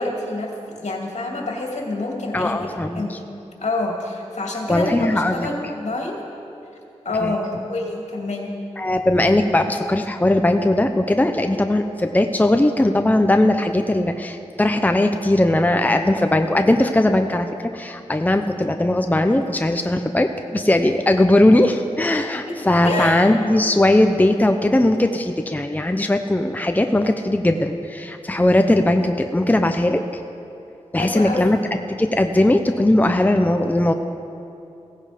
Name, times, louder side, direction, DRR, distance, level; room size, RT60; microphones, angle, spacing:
voice 1, 0.0-2.7 2.9-3.2 3.6-6.2 7.0-8.5 22.4-23.3 31.0-31.6, left 2 dB, 75° left, 0 dB, 2.4 m, -27 dB
voice 2, 2.3-3.2 4.7-5.5 7.2-7.4 8.8-30.0 30.9-31.6 31.9-33.9, left 1 dB, 15° left, 6 dB, 0.7 m, -19 dB
16.5 x 15.5 x 5.0 m, 2.7 s
wide cardioid pair, 75°, 12 cm